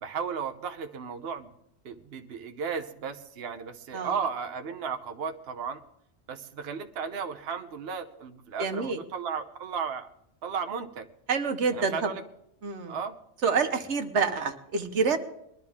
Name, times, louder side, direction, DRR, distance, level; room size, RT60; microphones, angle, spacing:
voice 1, 0.0-1.5 1.8-5.8 6.3-10.1 10.4-11.1 11.7-12.2 12.9-13.2, right 6 dB, 65° right, 7 dB, 1.0 m, -34 dB
voice 2, 8.6-9.0 11.3-12.1 12.6-13.0 13.4-15.2, right 5 dB, 90° right, 7 dB, 1.4 m, -27 dB
21.5 x 12.5 x 3.6 m, 0.76 s
omnidirectional pair, 1.1 m